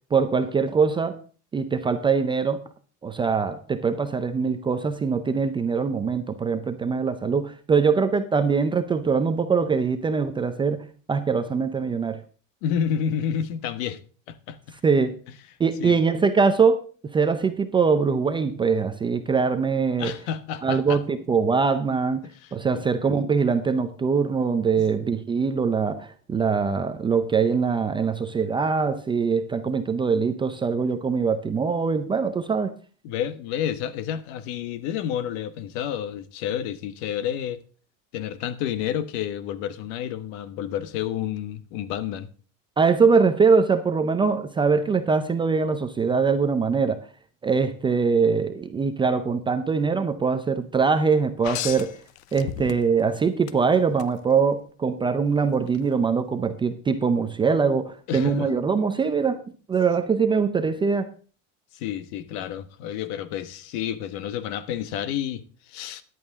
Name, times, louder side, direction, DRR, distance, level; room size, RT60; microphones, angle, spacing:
voice 1, 0.1-1.2 1.5-2.6 3.0-12.2 14.7-15.1 15.6-20.1 20.6-22.2 22.5-32.7 42.8-47.0 47.4-52.0 52.3-59.4 59.7-61.1, right 5 dB, 10° right, 0.5 m, -23 dB
voice 2, 12.6-14.0 14.3-14.8 15.8-15.9 20.0-21.0 22.7-22.8 24.8-24.9 33.0-37.6 38.1-42.3 58.1-58.5 61.7-66.0, left 9 dB, 55° left, 1.3 m, -30 dB
sound 1, 51.4-53.1 53.5-54.1 55.7-55.8, left 13 dB, 75° left, 1.0 m, -34 dB
14.0 x 11.0 x 3.6 m
supercardioid pair, 160°, 40 cm